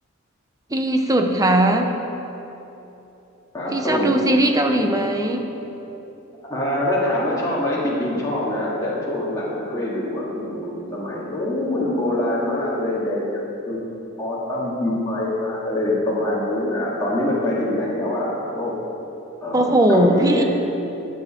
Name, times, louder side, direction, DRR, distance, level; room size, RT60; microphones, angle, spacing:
voice 1, 0.7-1.9 3.7-5.4 19.5-20.4, right 1 dB, 20° right, 4 dB, 0.9 m, -19 dB
voice 2, 3.5-4.1 4.7-4.9 6.5-18.8 19.4-20.4, left 1 dB, 20° left, -7 dB, 2.4 m, -24 dB
20.0 x 7.3 x 4.5 m, 3.0 s
head